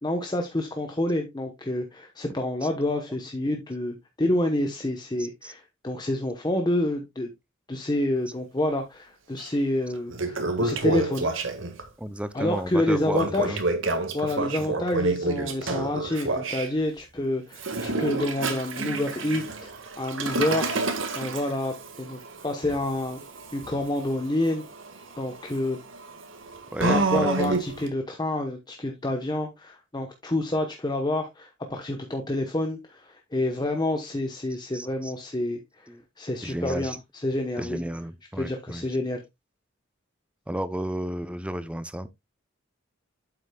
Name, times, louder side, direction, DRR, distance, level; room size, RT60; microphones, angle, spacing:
voice 1, 0.0-7.3 7.7-11.3 12.3-13.6 13.9-19.7 20.0-23.2 23.5-24.6 25.2-25.8 26.9-35.9 36.2-37.8 38.4-39.2, left 1 dB, 20° left, 0.9 m, -28 dB
Toilet flush, 9.4-9.5 9.9-11.8 13.1-16.7 17.5-27.9, right 3 dB, 70° right, 1.6 m, -29 dB
voice 2, 12.0-13.6 14.6-14.7 26.7-27.0 27.3-27.6 34.7-35.1 35.9-36.0 36.4-37.0 37.6-39.0 40.5-42.1, right 1 dB, 5° right, 0.5 m, -33 dB
8.8 x 7.6 x 2.2 m
head